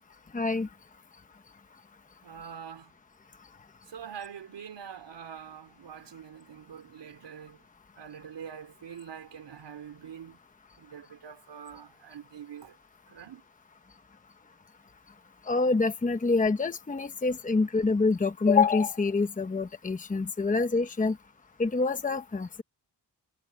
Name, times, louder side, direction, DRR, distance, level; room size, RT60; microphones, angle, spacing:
voice 1, 0.3-0.7 15.5-21.2 21.6-22.6, left 4 dB, 20° left, 1.0 m, -26 dB
voice 2, 2.2-2.9 3.9-7.6 8.0-10.4 10.8-12.8 13.1-13.4, right 8 dB, 90° right, 4.4 m, -44 dB
wide cardioid pair, 160°, 41 cm